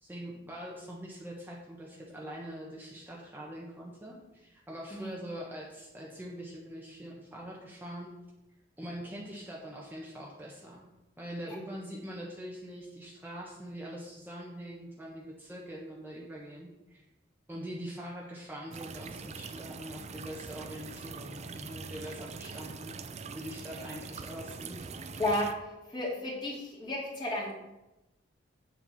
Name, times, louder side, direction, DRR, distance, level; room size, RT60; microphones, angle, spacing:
voice 1, 0.0-8.1 8.8-10.9 11.2-17.1 17.5-23.0 23.3-25.2, equal, 10° right, -3 dB, 1.3 m, -43 dB
sound 1, 18.7-25.5, right 4 dB, 40° right, 0.6 m, -43 dB
voice 2, 25.2-25.5 25.9-27.5, left 1 dB, 25° left, -3 dB, 2.5 m, -32 dB
8.8 x 7.5 x 4.2 m, 0.98 s
head